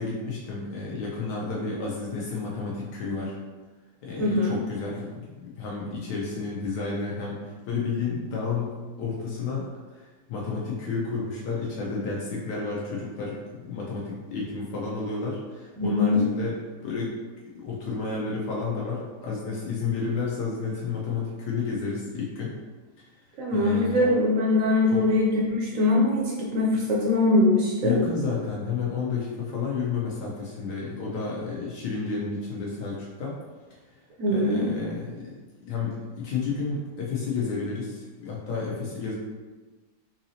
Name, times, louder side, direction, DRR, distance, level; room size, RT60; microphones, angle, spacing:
voice 1, 0.0-3.4 4.0-16.6 16.8-17.2 17.5-22.5 23.0-23.1 23.5-24.1 24.9-25.0 27.8-33.4 33.7-33.8 34.3-35.3 35.7-39.1, left 4 dB, 75° left, -5 dB, 1.3 m, -31 dB
voice 2, 4.2-4.6 15.8-16.2 23.4-28.0 34.2-34.7, left 2 dB, 70° right, -3 dB, 0.8 m, -22 dB
3.9 x 2.8 x 2.7 m, 1.3 s
omnidirectional pair, 1.9 m